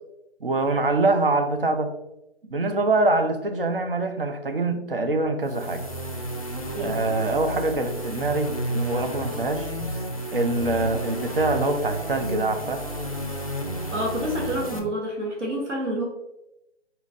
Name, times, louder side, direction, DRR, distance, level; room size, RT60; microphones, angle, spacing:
voice 1, 0.4-1.9 2.5-5.8 6.8-9.7 10.3-12.8, right 2 dB, 50° right, 6 dB, 0.6 m, -24 dB
sound 1, 5.4-14.8, right 1 dB, 30° left, 0.4 m, -32 dB
voice 2, 13.9-16.0, equal, 80° right, -1 dB, 1.3 m, -28 dB
4.1 x 3.9 x 2.4 m, 0.89 s
figure-of-eight pair, 165°, 35 cm